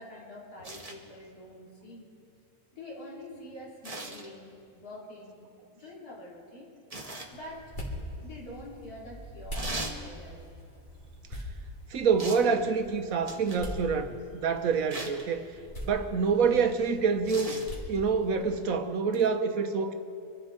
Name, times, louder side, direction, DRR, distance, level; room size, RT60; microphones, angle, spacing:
voice 1, 0.0-2.1 2.7-6.7 7.3-7.7 8.2-10.4, left 1 dB, 90° left, -5 dB, 3.5 m, -46 dB
sound 1, 0.6-1.0 3.8-4.3 6.9-7.3 9.5-10.0 12.2-12.5 13.3-13.7 14.9-15.2 17.2-17.7 19.1-19.3, right 2 dB, 25° right, 1.4 m, -38 dB
sound 2, 7.3-18.4, equal, 35° left, 2.5 m, -43 dB
voice 2, 11.9-15.5 15.9-17.5 17.9-19.9, right 5 dB, 70° right, 7 dB, 1.3 m, -26 dB
24.5 x 13.0 x 4.0 m, 2.4 s
omnidirectional pair, 1.6 m